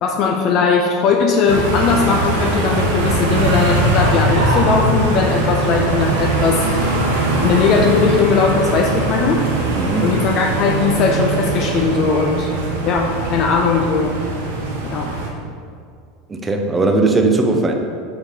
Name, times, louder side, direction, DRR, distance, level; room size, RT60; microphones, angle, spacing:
voice 1, 0.0-6.7 7.4-9.4 10.0-12.5 12.8-14.1 14.9-15.1, left 5 dB, 50° left, 1 dB, 0.4 m, -18 dB
sound 1, 1.5-15.3, right 2 dB, 75° right, 0.6 m, -20 dB
voice 2, 9.8-10.2 16.3-17.7, right 2 dB, 20° right, 3 dB, 0.5 m, -18 dB
4.5 x 3.6 x 2.7 m, 2.2 s
hypercardioid pair, 80°, 0 cm